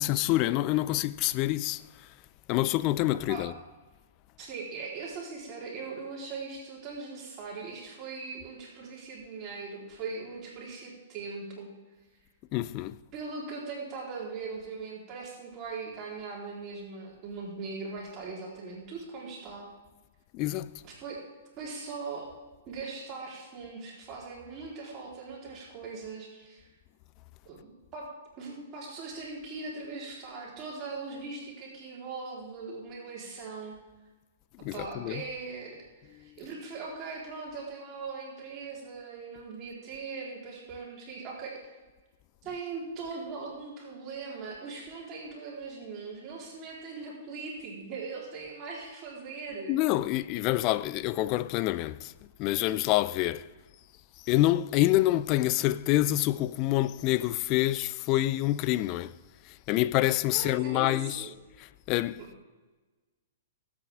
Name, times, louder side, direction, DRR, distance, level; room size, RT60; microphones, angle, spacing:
voice 1, 0.0-1.8 2.5-3.5 12.5-13.0 20.3-20.7 34.6-35.2 49.7-52.1 52.4-53.5 54.2-59.1 59.5-61.3 61.6-62.4, left 16 dB, 35° left, 0.5 m, -27 dB
voice 2, 4.4-11.7 13.1-19.7 20.8-21.2 21.6-22.3 22.7-26.7 27.4-27.6 27.9-28.1 28.4-33.8 34.7-41.6 42.4-49.8 60.3-61.3 62.2-62.3, right 4 dB, 35° right, 4.0 m, -40 dB
21.0 x 8.5 x 3.7 m
figure-of-eight pair, 110°, 0 cm